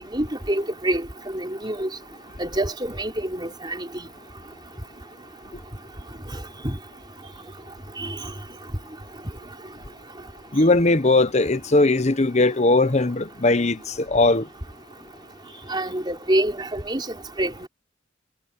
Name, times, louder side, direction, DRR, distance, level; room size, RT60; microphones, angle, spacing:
voice 1, 0.1-1.9 2.4-4.0 6.6-6.8 8.0-8.2 15.7-17.7, right 1 dB, 20° right, 4.1 m, -26 dB
voice 2, 10.5-14.5, left 2 dB, 35° left, 0.9 m, -19 dB
head